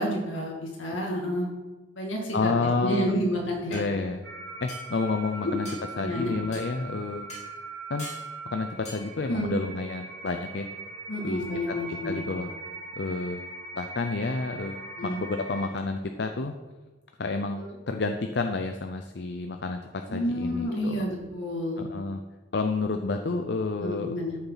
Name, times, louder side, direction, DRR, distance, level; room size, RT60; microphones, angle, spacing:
voice 1, 0.0-1.5 2.0-3.8 5.4-5.5 6.0-6.3 9.3-9.5 11.1-12.2 15.0-15.2 17.6-17.7 20.1-21.9 23.8-24.4, equal, 75° left, -1 dB, 2.4 m, -30 dB
voice 2, 2.3-3.1 3.7-4.2 4.6-5.7 6.0-7.3 7.9-8.1 8.5-10.7 11.2-11.4 11.7-12.5 13.0-13.4 13.7-16.5 17.2-21.0 21.8-22.2 22.5-24.1, left 3 dB, 55° left, 5 dB, 0.5 m, -30 dB
sound 1, 3.7-3.9 4.7-4.9 5.6-5.8 6.5-6.7 7.3-7.5 8.0-8.3 8.8-9.0, left 1 dB, 35° left, 2.3 m, -41 dB
sound 2, 4.2-15.7, right 3 dB, 60° right, 2.9 m, -41 dB
12.5 x 6.9 x 4.0 m, 1.2 s
head